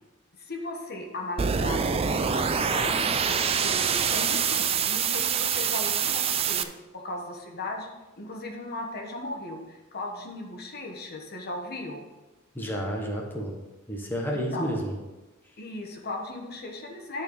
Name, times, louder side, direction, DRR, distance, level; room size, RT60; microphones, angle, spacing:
voice 1, 0.4-7.9 8.2-12.0 14.3-14.7 15.6-17.2, left 2 dB, 50° left, 2 dB, 1.3 m, -37 dB
sound 1, 1.4-6.6, right 7 dB, 30° right, 0.4 m, -25 dB
voice 2, 12.5-13.5 13.9-14.9, equal, 10° left, -1 dB, 1.2 m, -30 dB
11.5 x 4.4 x 5.4 m, 1.1 s
head